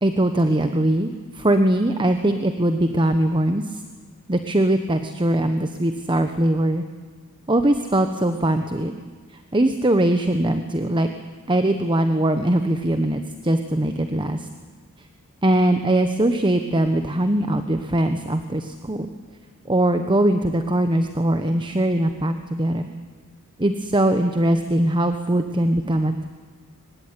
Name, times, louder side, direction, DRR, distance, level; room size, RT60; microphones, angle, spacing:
voice 1, 0.0-3.8 4.3-6.8 7.5-8.9 9.3-11.1 11.5-14.5 15.4-19.1 19.7-22.9 23.6-26.3, right 1 dB, 20° right, 8 dB, 1.1 m, -21 dB
23.5 x 20.0 x 9.8 m, 1.4 s
head